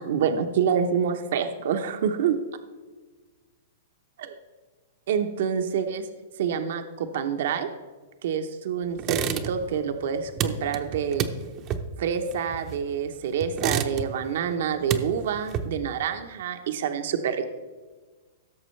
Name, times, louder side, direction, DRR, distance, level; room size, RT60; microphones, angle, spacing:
voice 1, 0.0-2.4 4.2-4.3 5.1-6.1 6.4-7.7 8.2-11.3 12.0-17.4, right 7 dB, 65° right, 7 dB, 0.9 m, -27 dB
sound 1, 9.0-9.8 10.0-13.0 13.4-14.3 14.6-16.0, right 8 dB, 35° right, 0.7 m, -30 dB
16.5 x 6.7 x 3.2 m, 1.3 s
hypercardioid pair, 140°, 0 cm